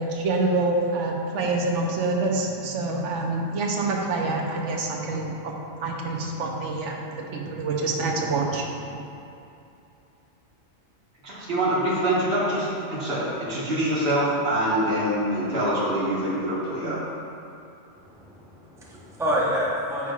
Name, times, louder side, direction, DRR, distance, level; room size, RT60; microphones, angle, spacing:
voice 1, 0.0-9.1, right 3 dB, 80° right, 0 dB, 1.1 m, -27 dB
voice 2, 11.2-17.0, right 1 dB, 55° right, -7 dB, 1.7 m, -25 dB
voice 3, 18.0-20.1, equal, 5° right, -5 dB, 0.8 m, -28 dB
9.2 x 5.5 x 2.4 m, 2.7 s
omnidirectional pair, 1.2 m